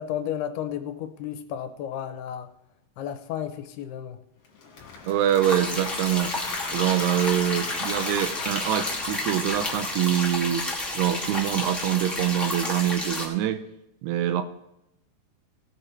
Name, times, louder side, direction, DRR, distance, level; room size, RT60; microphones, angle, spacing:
voice 1, 0.0-2.5 3.0-4.2, left 10 dB, 75° left, 8 dB, 2.7 m, -33 dB
Applause / Crowd, 4.4-10.5, left 4 dB, 50° left, 2.6 m, -38 dB
voice 2, 5.0-6.3 6.7-10.7 10.9-13.6 14.0-14.4, right 11 dB, 80° right, 10 dB, 2.6 m, -25 dB
sound 1, 5.4-13.3, left 2 dB, ahead, 0.8 m, -31 dB
18.5 x 7.0 x 4.5 m, 0.83 s
omnidirectional pair, 4.9 m